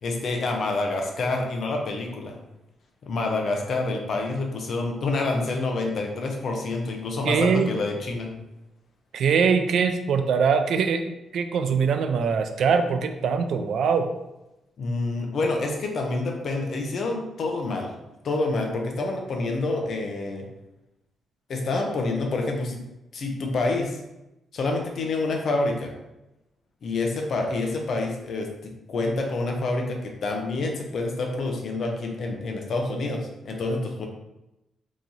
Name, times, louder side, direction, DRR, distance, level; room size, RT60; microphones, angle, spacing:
voice 1, 0.0-2.4 3.0-8.3 14.8-17.9 18.2-20.4 21.5-22.8 23.1-24.0 24.5-25.9 26.8-34.1, left 2 dB, 45° left, 2 dB, 0.6 m, -27 dB
voice 2, 7.2-7.7 9.1-11.0 11.3-14.1, right 6 dB, 60° right, 7 dB, 0.3 m, -22 dB
3.0 x 2.7 x 3.7 m, 0.94 s
wide cardioid pair, 170°, 0 cm